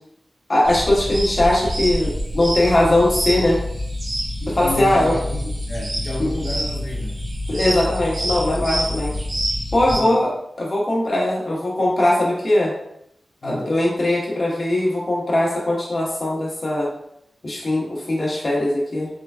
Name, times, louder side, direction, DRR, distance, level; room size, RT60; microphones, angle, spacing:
voice 1, 0.5-3.6 4.5-5.1 6.2-6.3 7.5-9.1 9.7-10.3 10.6-12.7 13.4-16.9 17.4-19.1, left 1 dB, 50° left, -5 dB, 1.5 m, -20 dB
sound 1, 0.6-10.0, equal, 65° right, 1.3 m, -26 dB
voice 2, 4.4-7.2 9.1-9.2 9.8-10.3 13.4-13.8, left 1 dB, 80° left, -5 dB, 1.0 m, -31 dB
3.7 x 3.7 x 2.4 m, 0.76 s
cardioid pair, 65°, 0 cm